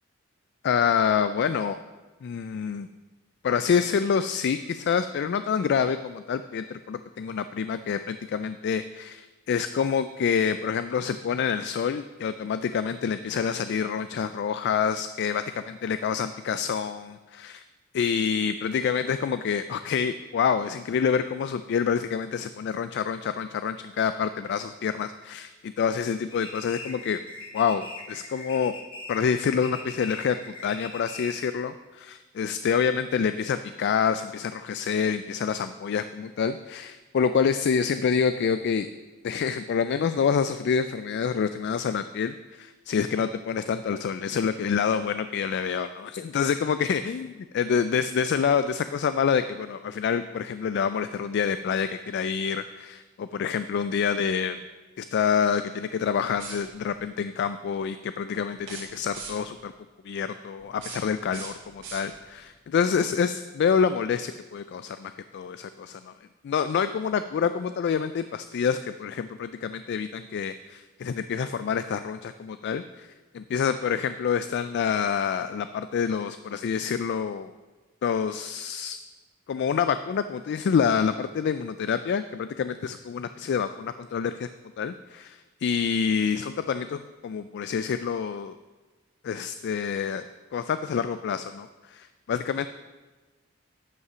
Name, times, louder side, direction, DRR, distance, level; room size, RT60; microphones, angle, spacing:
voice 1, 0.6-1.8 2.2-2.9 3.4-17.2 17.9-27.2 27.5-28.7 29.1-38.9 39.2-47.3 47.5-54.6 55.0-59.7 60.0-66.1 66.4-73.1 73.3-77.5 78.0-79.0 79.5-84.5 84.8-88.5 89.2-90.3 90.5-92.7, left 6 dB, 55° left, 11 dB, 0.3 m, -27 dB
sound 1, 26.3-31.6, left 3 dB, 25° left, 1.2 m, -41 dB
sound 2, 56.3-57.0 58.6-59.6 60.6-62.4, right 4 dB, 60° right, 2.2 m, -42 dB
9.4 x 5.6 x 6.1 m, 1.2 s
head